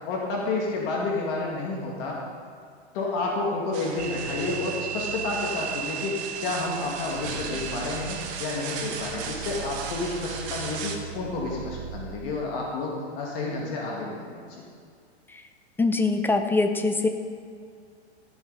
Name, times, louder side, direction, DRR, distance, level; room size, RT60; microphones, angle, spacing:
voice 1, 0.1-2.2 2.9-6.2 6.4-14.6, left 3 dB, 55° left, -2 dB, 2.2 m, -30 dB
sound 1, 3.7-11.0, right 5 dB, 55° right, 1.7 m, -37 dB
sound 2, 4.0-12.6, right 9 dB, 90° right, 0.8 m, -37 dB
voice 2, 15.8-17.1, left 3 dB, 5° left, 7 dB, 0.6 m, -23 dB
15.0 x 7.1 x 4.1 m, 2.3 s
hypercardioid pair, 115°, 33 cm